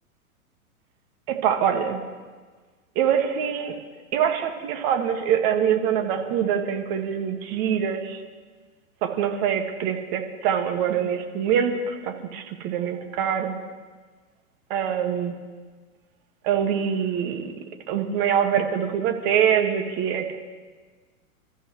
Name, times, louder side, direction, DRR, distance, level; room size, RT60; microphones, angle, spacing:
voice 1, 1.3-2.0 3.0-3.8 4.1-8.2 9.0-13.6 14.7-15.3 16.4-17.4 17.9-20.4, right 8 dB, 40° right, 4 dB, 1.9 m, -24 dB
29.0 x 13.5 x 3.2 m, 1.4 s
hypercardioid pair, 115°, 43 cm